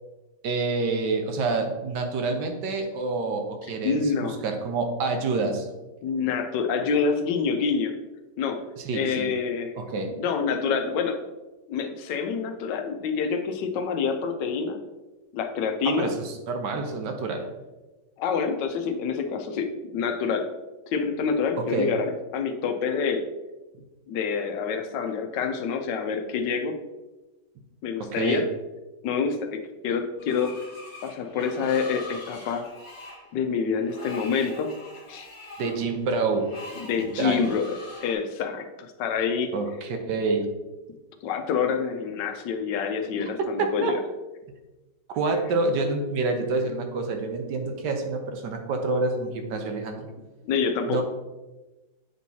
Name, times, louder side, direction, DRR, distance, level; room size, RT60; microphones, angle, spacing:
voice 1, 0.4-5.7 8.8-9.3 9.8-10.1 15.8-17.4 21.6-21.9 28.0-28.4 35.6-36.5 37.0-37.5 39.5-40.5 43.2-44.0 45.1-50.1 50.9-51.0, right 3 dB, 80° right, 5 dB, 1.4 m, -27 dB
voice 2, 3.8-4.4 6.0-7.9 8.4-8.6 8.9-9.7 10.2-11.2 11.7-14.8 15.3-16.1 18.2-20.5 20.9-23.2 24.1-26.8 27.8-28.4 29.0-30.6 31.0-32.7 33.3-34.7 35.1-35.3 36.8-37.7 38.0-39.5 41.2-44.0 50.4-51.0, left 5 dB, 90° left, 6 dB, 1.3 m, -27 dB
Screech, 30.2-38.1, left 2 dB, 15° left, 2.1 m, -44 dB
8.0 x 4.5 x 2.7 m, 1.1 s
omnidirectional pair, 1.8 m